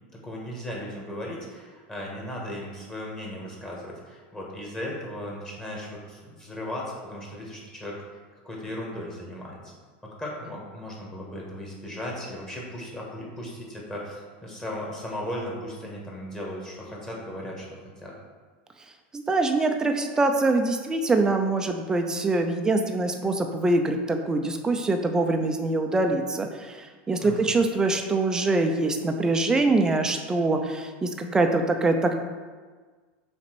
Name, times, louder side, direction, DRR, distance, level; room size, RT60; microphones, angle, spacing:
voice 1, 0.1-8.0 8.4-9.7 10.0-18.1 27.2-27.5, left 1 dB, 10° left, -3 dB, 1.7 m, -36 dB
voice 2, 19.1-32.1, right 2 dB, 10° right, 5 dB, 0.6 m, -24 dB
5.9 x 4.3 x 6.0 m, 1.5 s
supercardioid pair, 150°, 6 cm